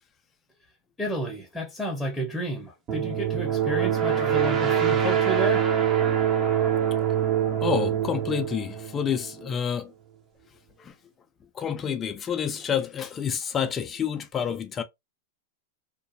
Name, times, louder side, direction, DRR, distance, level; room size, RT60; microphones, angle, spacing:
voice 1, 1.0-5.7, right 1 dB, 5° left, 0.7 m, -31 dB
sound 1, 2.9-9.5, right 9 dB, 30° right, 0.7 m, -24 dB
voice 2, 7.6-9.9 10.8-10.9 11.6-14.8, left 8 dB, 25° left, 0.4 m, -28 dB
2.5 x 2.2 x 2.6 m
hypercardioid pair, 115°, 0 cm